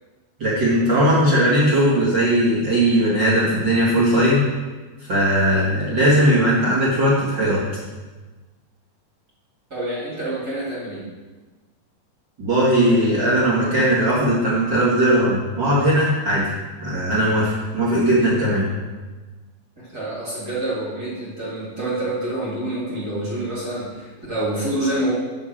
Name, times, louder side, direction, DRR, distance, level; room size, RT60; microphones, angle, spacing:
voice 1, 0.4-4.4 5.1-7.6 12.4-16.4 16.8-18.7, right 1 dB, 60° right, -8 dB, 1.1 m, -18 dB
voice 2, 9.7-11.1 19.8-25.1, right 1 dB, 35° right, -7 dB, 1.6 m, -27 dB
7.9 x 4.9 x 7.4 m, 1.3 s
omnidirectional pair, 5.4 m